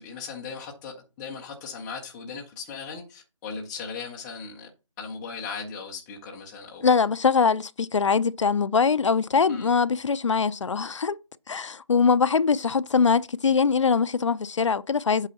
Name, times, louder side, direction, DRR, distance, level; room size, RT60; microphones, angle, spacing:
voice 1, 0.0-4.7 5.0-6.9 9.5-9.7, left 5 dB, 5° left, 0.4 m, -38 dB
voice 2, 6.8-11.2 11.5-15.3, left 5 dB, 65° left, 0.5 m, -22 dB
8.2 x 3.8 x 5.6 m
figure-of-eight pair, 160°, 17 cm